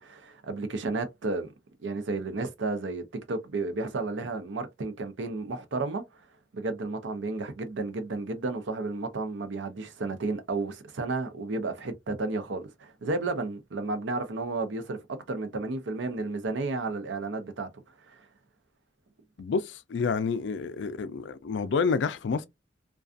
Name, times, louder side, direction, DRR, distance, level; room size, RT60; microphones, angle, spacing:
voice 1, 0.0-1.5 1.8-6.0 6.5-15.0 15.3-17.7 18.1-18.3, right 3 dB, 80° right, 0.6 m, -32 dB
voice 2, 19.4-22.4, left 5 dB, 70° left, 0.4 m, -29 dB
2.4 x 2.3 x 2.4 m
head